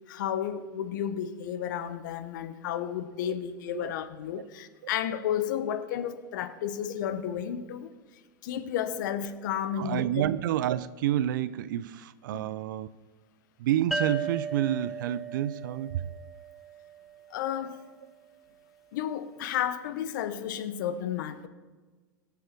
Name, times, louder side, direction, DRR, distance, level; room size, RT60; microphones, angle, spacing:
voice 1, 0.1-7.9 8.4-10.0 12.3-12.4 17.3-17.8 18.9-21.5, left 9 dB, 70° left, 0.9 m, -32 dB
voice 2, 9.8-12.9 13.6-16.1, right 12 dB, 70° right, 0.5 m, -29 dB
sound 1, 13.9-17.4, right 5 dB, ahead, 0.8 m, -36 dB
17.5 x 6.9 x 4.6 m
hypercardioid pair, 100°, 11 cm